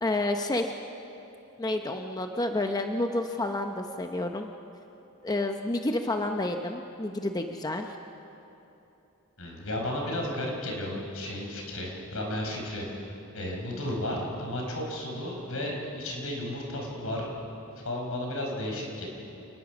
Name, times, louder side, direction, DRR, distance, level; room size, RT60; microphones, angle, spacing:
voice 1, 0.0-0.7 1.6-4.5 5.2-8.0, left 2 dB, 20° left, 4 dB, 0.7 m, -29 dB
voice 2, 9.4-12.9 13.3-17.3 17.8-19.1, left 1 dB, 75° left, 0 dB, 4.9 m, -33 dB
27.5 x 19.5 x 6.1 m, 2.9 s
head